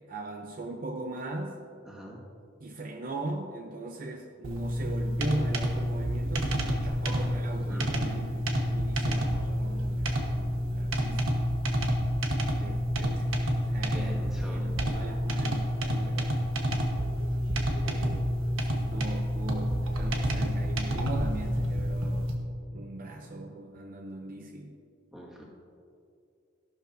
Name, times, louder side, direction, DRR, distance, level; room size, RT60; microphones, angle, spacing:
voice 1, 0.0-1.7 2.6-11.5 12.6-16.4 17.8-18.3 18.6-22.4 22.7-24.8, right 2 dB, 45° right, 3 dB, 0.6 m, -39 dB
voice 2, 1.8-2.2 7.7-8.0 13.9-14.7 25.1-25.4, equal, 5° right, -4 dB, 1.7 m, -44 dB
sound 1, 4.4-22.4, equal, 90° right, 1.2 m, -29 dB
14.0 x 12.0 x 2.7 m, 2.4 s
head